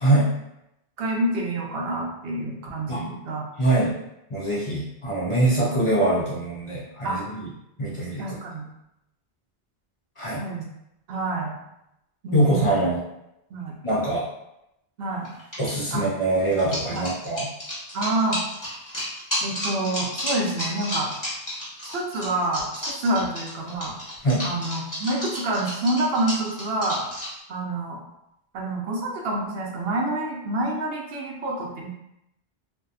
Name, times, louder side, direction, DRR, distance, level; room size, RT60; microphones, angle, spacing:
voice 1, 0.0-0.3 2.9-3.0 3.6-3.9 4.3-7.5 7.8-8.2 10.2-10.4 12.3-13.0 13.8-14.3 15.6-17.5 24.2-24.5, right 1 dB, 45° left, -6 dB, 0.4 m, -23 dB
voice 2, 1.0-3.4 7.0-7.2 8.2-8.7 10.4-10.6 11.1-11.6 12.2-12.8 13.5-13.8 15.0-15.3 15.9-16.1 16.9-17.0 17.9-18.4 19.4-21.1 21.9-24.0 24.4-27.0 27.5-28.0 28.5-31.9, right 2 dB, 75° right, -2 dB, 0.8 m, -27 dB
sound 1, 15.2-15.7 16.5-27.3, left 1 dB, 20° left, 1.0 m, -31 dB
2.6 x 2.2 x 2.3 m, 0.84 s
omnidirectional pair, 1.0 m